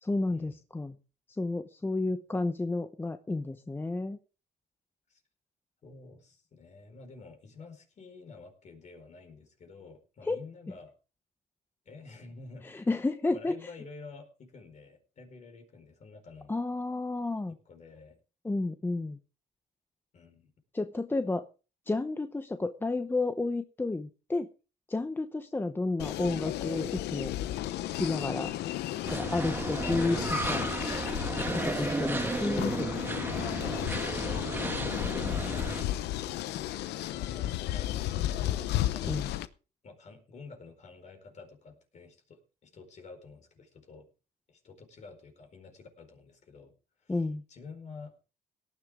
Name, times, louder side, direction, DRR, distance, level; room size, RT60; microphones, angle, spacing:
voice 1, 0.0-1.0 1.4-4.2 10.3-10.4 12.6-13.5 16.5-17.5 18.4-19.2 20.7-21.5 21.9-24.5 24.9-27.3 28.0-28.5 29.1-30.2 30.5-30.6 31.4-33.0 39.0-39.3 47.1-47.4, left 2 dB, 10° left, 9 dB, 0.8 m, -31 dB
voice 2, 5.8-10.9 11.8-12.9 13.3-16.5 17.5-18.2 20.1-20.5 29.8-30.2 34.7-35.4 35.6-35.8 36.9-39.4 39.8-44.1 44.5-48.3, left 4 dB, 45° left, 4 dB, 4.6 m, -50 dB
sound 1, 26.0-39.5, left 13 dB, 80° left, 0.8 m, -33 dB
sound 2, 29.0-35.8, right 2 dB, 10° right, 1.4 m, -33 dB
18.0 x 11.0 x 3.6 m, 0.34 s
cardioid pair, 110°, 17 cm